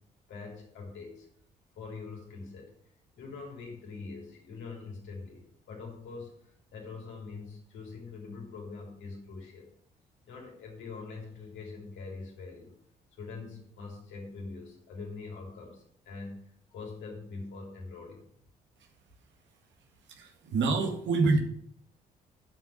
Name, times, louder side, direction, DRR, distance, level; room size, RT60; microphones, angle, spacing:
voice 1, 0.3-1.3 1.8-2.7 3.2-6.3 6.7-9.7 10.2-12.7 13.2-16.4 16.7-18.2, left 4 dB, 70° left, 0 dB, 3.2 m, -43 dB
voice 2, 20.1-21.4, right 3 dB, 65° right, 4 dB, 1.8 m, -26 dB
7.1 x 6.3 x 7.7 m, 0.67 s
hypercardioid pair, 50°, 20 cm